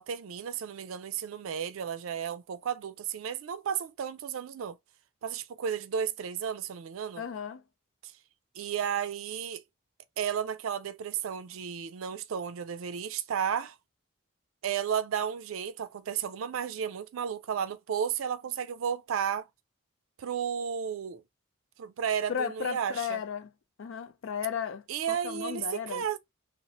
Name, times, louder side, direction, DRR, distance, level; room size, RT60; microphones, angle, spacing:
voice 1, 0.0-4.8 5.2-7.2 8.0-8.1 8.6-9.6 10.2-13.8 14.6-19.5 20.2-21.2 21.8-23.2 24.9-26.2, right 8 dB, 80° right, 0.4 m, -33 dB
voice 2, 7.2-7.6 22.3-23.5 23.8-26.1, left 7 dB, 70° left, 0.4 m, -35 dB
2.9 x 2.0 x 2.8 m
head